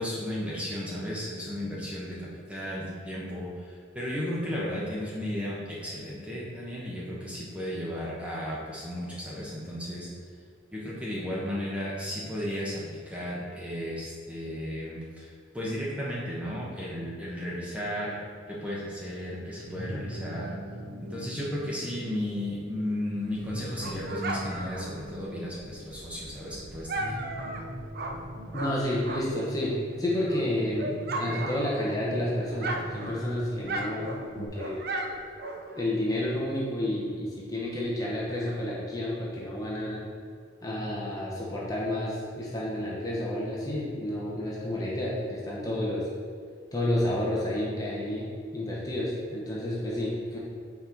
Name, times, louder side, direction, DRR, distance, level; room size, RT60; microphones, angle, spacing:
voice 1, 0.0-10.1 10.7-18.2 18.5-20.5 21.0-27.1, equal, 5° right, -6 dB, 1.0 m, -34 dB
sound 1, 19.7-34.5, equal, 80° right, 0.9 m, -41 dB
Dog, 23.3-29.5 29.9-32.2 32.5-35.9, right 2 dB, 50° right, 0.5 m, -36 dB
voice 2, 28.5-29.7 30.0-30.9 31.2-34.8 35.8-40.0 40.6-46.0 46.7-50.4, left 1 dB, 20° left, -6 dB, 0.9 m, -30 dB
5.8 x 4.3 x 4.6 m, 2.1 s
head